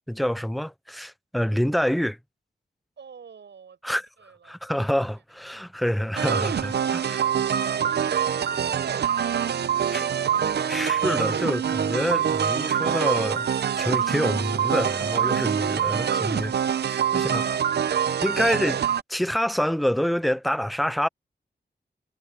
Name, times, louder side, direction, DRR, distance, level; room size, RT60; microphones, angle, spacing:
voice 1, 0.1-2.2 3.8-4.0 4.5-7.2 9.9-10.1 10.7-16.5 16.9-17.5 18.2-18.8 19.1-21.1, equal, ahead, 0.3 m, -27 dB
voice 2, 3.0-5.4, right 6 dB, 85° right, 7.0 m, -52 dB
sound 1, 6.2-19.0, right 8 dB, 70° right, 0.6 m, -25 dB
wide cardioid pair, 105°, 18 cm